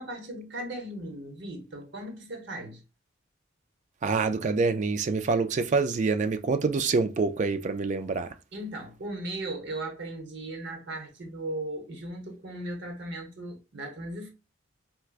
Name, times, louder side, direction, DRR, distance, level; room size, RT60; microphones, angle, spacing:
voice 1, 0.0-2.8 8.5-14.3, right 1 dB, 55° right, 1.0 m, -37 dB
voice 2, 4.0-8.3, right 4 dB, 35° right, 0.3 m, -26 dB
4.5 x 2.1 x 2.4 m
head